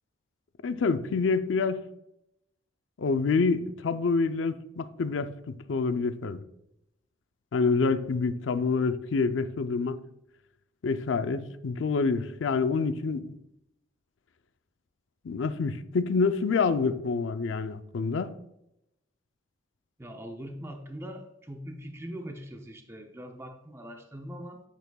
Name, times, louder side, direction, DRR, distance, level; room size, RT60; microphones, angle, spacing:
voice 1, 0.6-1.8 3.0-6.4 7.5-10.0 10.8-13.3 15.2-18.3, left 4 dB, 70° left, 0.4 m, -27 dB
voice 2, 20.0-24.6, equal, 15° right, 0.5 m, -41 dB
8.1 x 6.6 x 2.3 m
head